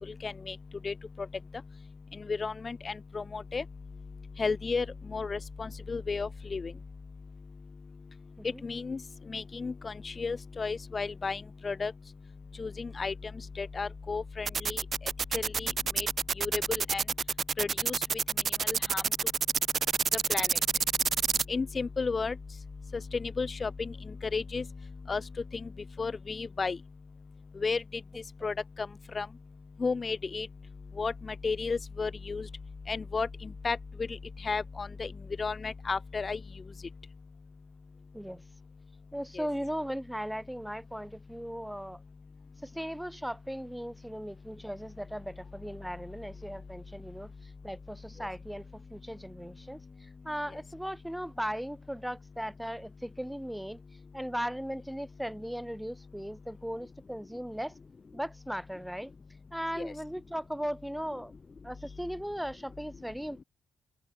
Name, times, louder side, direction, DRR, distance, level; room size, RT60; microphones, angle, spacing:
voice 1, 0.2-0.5 0.8-0.9 2.3-3.6 4.4-4.8 5.1-6.7 8.6-9.0 9.3-11.9 12.6-13.1 13.6-14.8 15.3-15.7 16.0-16.1 16.4-17.0 17.6-18.0 18.7-19.0 20.3-20.5 21.5-22.3 23.4-23.7 24.3-24.6 25.1-25.2 26.0-26.8 27.6-27.8 28.4-28.5 29.1-29.3 29.8-30.5 31.0-31.1 31.4-32.4 32.9-33.3 33.6-33.8 34.4-35.1 35.4-36.4 39.4-39.5 59.8-59.9, left 4 dB, 30° left, 1.1 m, -32 dB
sound 1, 14.5-21.4, right 6 dB, 45° right, 0.7 m, -27 dB
voice 2, 39.1-42.0 42.6-47.3 47.6-49.8 50.2-53.8 54.1-57.7 58.1-59.1 59.5-61.3 61.6-63.4, equal, ahead, 1.3 m, -37 dB
open air
cardioid pair, 90°, 0 cm